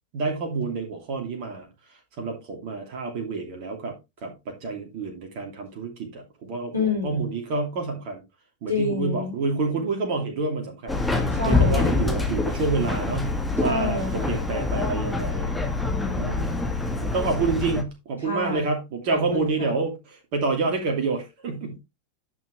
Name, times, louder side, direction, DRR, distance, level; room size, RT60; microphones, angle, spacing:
voice 1, 0.1-1.7 2.2-4.0 4.2-8.2 8.6-15.5 16.2-21.8, right 4 dB, 45° right, 2.7 m, -28 dB
voice 2, 6.7-7.2 8.7-9.3 11.3-12.0 13.6-14.4 15.8-16.6 18.2-18.7 19.1-19.7, left 3 dB, 80° left, 3.0 m, -29 dB
Subway metro underground, 10.9-17.8, left 3 dB, 5° left, 1.8 m, -25 dB
10.5 x 6.3 x 3.2 m
figure-of-eight pair, 90°, 0 cm